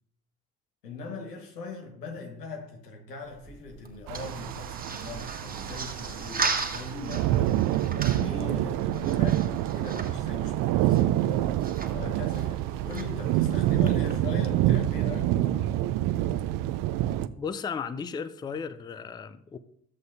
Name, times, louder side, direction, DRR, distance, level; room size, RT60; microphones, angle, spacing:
voice 1, 0.8-7.6 7.9-11.2 11.9-15.8, left 3 dB, 85° left, 1.5 m, -40 dB
sound 1, 3.2-14.1, right 4 dB, 20° right, 1.5 m, -38 dB
sound 2, 4.1-17.3, right 13 dB, 45° right, 0.6 m, -27 dB
voice 2, 17.4-19.6, left 6 dB, 10° left, 0.4 m, -35 dB
13.5 x 7.7 x 2.7 m
figure-of-eight pair, 60°, 47 cm